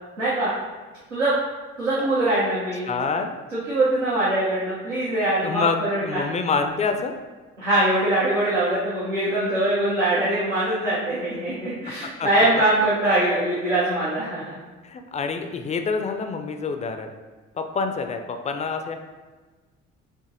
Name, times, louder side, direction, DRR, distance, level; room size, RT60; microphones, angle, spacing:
voice 1, 0.2-0.5 1.1-1.3 1.8-2.9 3.5-6.3 7.6-14.6, right 1 dB, 85° right, -9 dB, 0.8 m, -23 dB
voice 2, 2.8-3.3 5.4-7.1 12.2-12.5 14.8-17.1 17.6-19.0, left 4 dB, 20° left, 6 dB, 0.4 m, -27 dB
7.1 x 2.7 x 2.5 m, 1.3 s
figure-of-eight pair, 50°, 36 cm